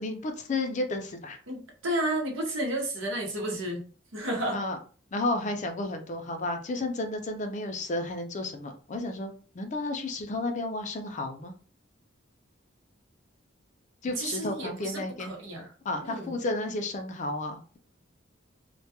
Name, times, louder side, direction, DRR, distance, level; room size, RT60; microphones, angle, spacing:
voice 1, 0.0-1.4 4.5-4.8 5.1-11.5 14.0-15.3 15.8-17.8, left 2 dB, 40° left, 5 dB, 0.4 m, -32 dB
voice 2, 1.5-3.8 4.1-4.6 14.2-15.7 16.0-16.3, right 1 dB, 75° right, 0 dB, 0.9 m, -32 dB
2.2 x 2.2 x 2.8 m, 0.40 s
head